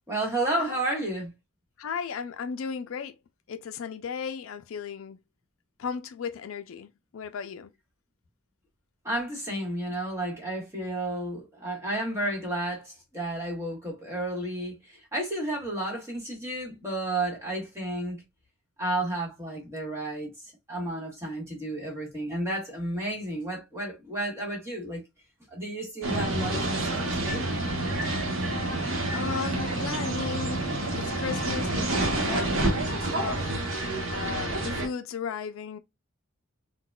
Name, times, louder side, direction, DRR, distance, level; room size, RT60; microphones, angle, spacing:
voice 1, 0.1-1.3 9.0-14.8 15.1-18.2 18.8-20.3 20.7-25.0 25.5-27.5, right 1 dB, 15° right, 1.3 m, -32 dB
voice 2, 1.8-3.2 3.5-5.2 5.8-7.7 28.2-28.8 29.1-35.8, left 6 dB, 70° left, 0.4 m, -36 dB
sound 1, 26.0-34.9, right 1 dB, 70° right, 0.9 m, -28 dB
3.8 x 2.1 x 2.2 m
head